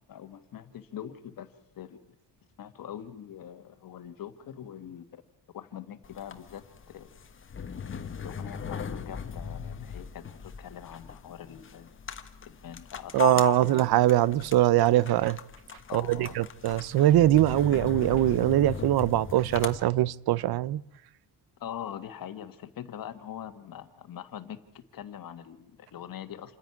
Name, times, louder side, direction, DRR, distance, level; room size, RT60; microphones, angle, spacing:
voice 1, 0.0-2.1 2.6-5.2 5.5-7.1 8.2-11.9 12.4-13.7 15.9-16.3 21.6-26.6, left 10 dB, 50° left, 1.6 m, -43 dB
sound 1, 6.0-19.8, left 7 dB, 30° left, 1.2 m, -38 dB
voice 2, 13.1-15.4 15.9-20.8, right 14 dB, 60° right, 0.6 m, -22 dB
27.5 x 10.5 x 9.6 m
cardioid pair, 165°, 43 cm